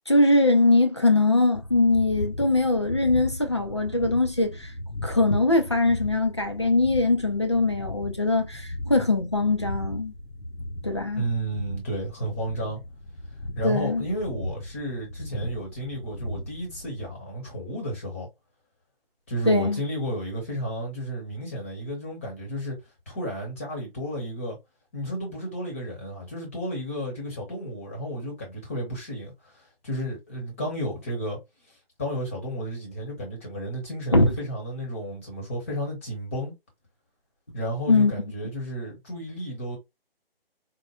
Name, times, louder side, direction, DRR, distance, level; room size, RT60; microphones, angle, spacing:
voice 1, 0.1-4.7 5.0-10.1 10.8-11.2 13.6-14.0 19.5-19.8 34.1-34.3 37.9-38.1, left 2 dB, 30° left, 0.4 m, -22 dB
sound 1, 1.5-17.1, left 1 dB, 85° left, 1.0 m, -37 dB
voice 2, 11.1-12.8 13.5-18.3 19.3-22.8 23.1-24.6 24.9-31.4 32.0-36.5 37.5-39.8, equal, 15° left, 0.8 m, -32 dB
4.3 x 2.1 x 2.3 m
figure-of-eight pair, 160°, 30 cm